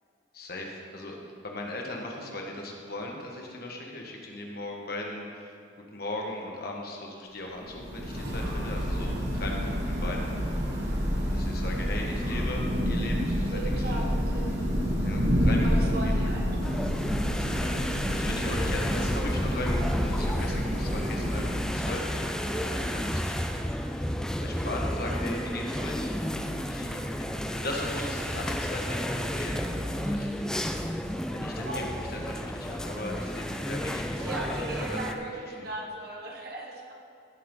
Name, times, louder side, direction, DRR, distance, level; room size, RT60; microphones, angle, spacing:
voice 1, 0.3-5.6 5.9-10.3 11.3-14.0 15.0-15.8 16.0-16.1 17.3-24.1 24.4-26.1 26.4-30.4 31.3-31.9 32.1-35.7, left 1 dB, 50° left, 0 dB, 1.6 m, -38 dB
Thunder / Rain, 7.6-21.9, equal, 70° right, 2.8 m, -28 dB
voice 2, 13.5-14.1 14.3-14.6 15.6-16.5 31.6-32.1 34.2-36.9, right 1 dB, 50° right, -1 dB, 1.6 m, -37 dB
sound 1, 16.6-35.1, equal, 5° left, 0.4 m, -32 dB
16.0 x 7.7 x 3.9 m, 2.5 s
head